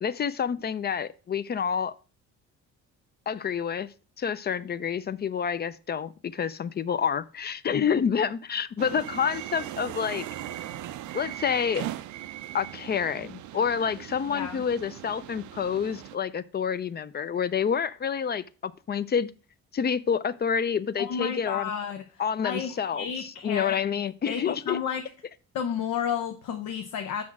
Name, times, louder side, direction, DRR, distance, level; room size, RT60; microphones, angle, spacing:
voice 1, 0.0-1.9 3.3-10.3 11.1-11.9 12.5-19.3 19.7-21.7 22.2-24.8, left 7 dB, 35° left, 0.4 m, -28 dB
sound 1, 8.8-16.1, right 13 dB, 75° right, 0.5 m, -39 dB
voice 2, 14.2-14.6 21.0-24.0 24.3-25.0 25.5-27.2, left 7 dB, 80° left, 0.8 m, -32 dB
5.8 x 4.3 x 6.0 m
cardioid pair, 90°, 30 cm